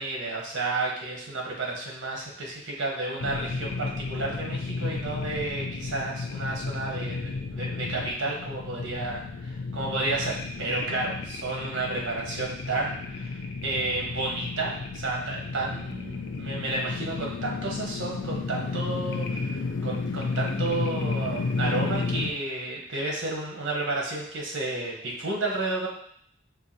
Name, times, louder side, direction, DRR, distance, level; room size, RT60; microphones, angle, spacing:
voice 1, 0.0-25.9, right 2 dB, 80° right, -2 dB, 1.0 m, -31 dB
sound 1, 3.2-22.3, left 4 dB, 75° left, 0.4 m, -32 dB
4.7 x 2.7 x 2.7 m, 0.65 s
head